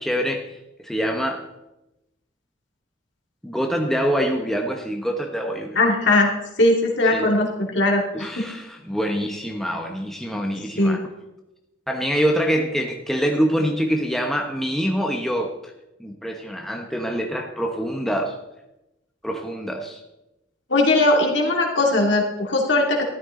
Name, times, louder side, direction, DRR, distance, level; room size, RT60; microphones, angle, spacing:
voice 1, 0.0-1.4 3.4-5.8 7.1-7.3 8.1-11.0 11.9-15.5 16.0-18.4 19.2-20.0, equal, ahead, 1 dB, 1.0 m, -25 dB
voice 2, 5.7-6.3 6.6-8.5 10.8-11.0 20.7-23.0, left 2 dB, 60° left, 0 dB, 2.6 m, -19 dB
14.5 x 12.5 x 3.8 m, 0.93 s
head